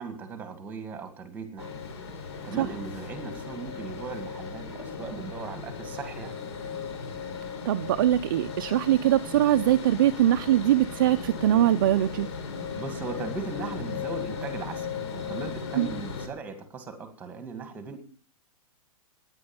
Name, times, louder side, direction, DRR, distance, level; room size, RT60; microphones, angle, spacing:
voice 1, 0.0-1.8 2.1-6.4 12.8-14.9 15.1-18.0, right 4 dB, 10° right, 9 dB, 2.0 m, -38 dB
sound 1, 1.6-16.3, left 5 dB, 50° left, 3.9 m, -37 dB
voice 2, 7.6-12.3 15.8-15.9, right 12 dB, 35° right, 8 dB, 0.6 m, -22 dB
16.5 x 9.9 x 7.1 m, 0.42 s
hypercardioid pair, 175°, 19 cm